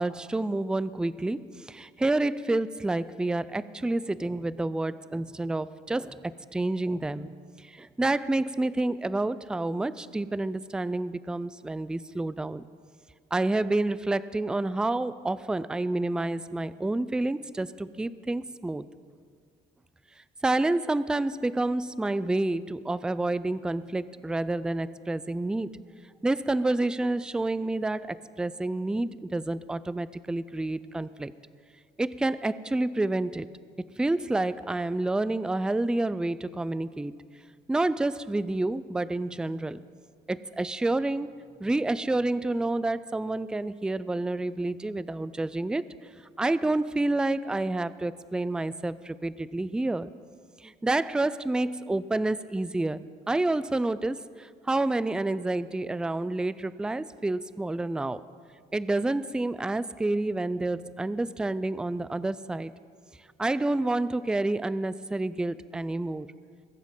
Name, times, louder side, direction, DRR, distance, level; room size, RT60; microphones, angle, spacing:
voice 1, 0.0-12.6 13.3-18.8 20.4-25.9 26.2-31.3 32.0-33.5 33.8-37.2 37.7-39.8 40.3-41.3 41.6-45.9 46.4-50.1 50.6-58.2 58.7-62.7 63.4-66.3, right 2 dB, 5° right, 16 dB, 0.3 m, -29 dB
21.5 x 7.4 x 5.4 m, 2.1 s
cardioid pair, 110°, 17 cm